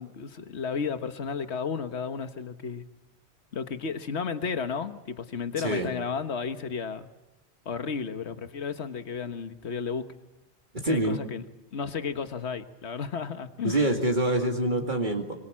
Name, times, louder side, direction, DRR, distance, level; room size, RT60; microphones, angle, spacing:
voice 1, 0.0-2.8 3.5-7.1 7.6-10.1 10.8-11.4 11.7-13.8, left 6 dB, 80° left, 9 dB, 1.5 m, -33 dB
voice 2, 5.6-5.9 10.7-11.2 13.6-15.3, right 1 dB, 45° right, 2 dB, 2.5 m, -26 dB
27.0 x 26.5 x 7.5 m, 0.95 s
omnidirectional pair, 1.1 m